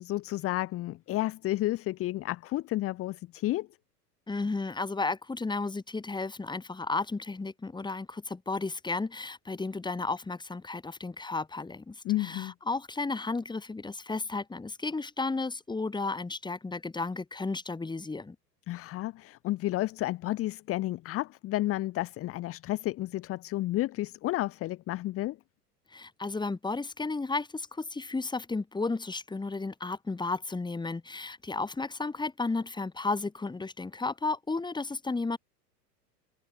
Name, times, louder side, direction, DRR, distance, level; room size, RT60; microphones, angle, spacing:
voice 1, 0.0-3.7 12.0-12.5 18.7-25.4, left 16 dB, 30° left, 1.3 m, -31 dB
voice 2, 4.3-18.4 25.9-35.4, left 3 dB, 10° left, 3.9 m, -33 dB
figure-of-eight pair, 90°, 49 cm